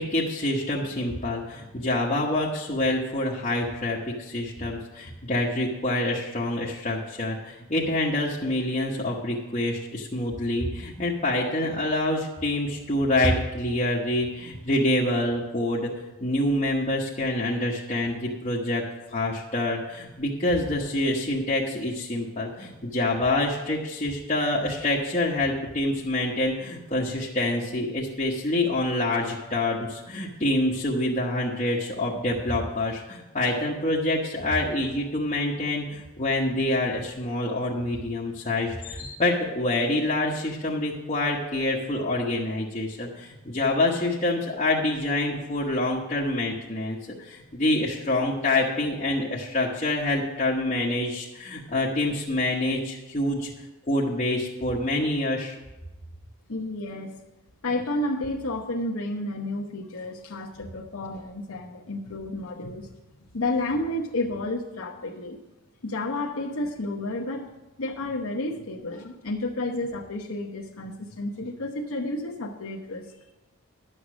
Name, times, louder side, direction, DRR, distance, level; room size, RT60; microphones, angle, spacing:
voice 1, 0.0-15.9 16.2-18.8 19.1-53.5 53.9-55.5, left 1 dB, 30° left, -6 dB, 1.1 m, -26 dB
voice 2, 56.5-57.2 57.6-62.9 63.3-65.4 65.8-67.5 67.8-73.2, left 2 dB, 75° left, -1 dB, 0.9 m, -31 dB
11.0 x 6.6 x 6.2 m, 1.0 s
head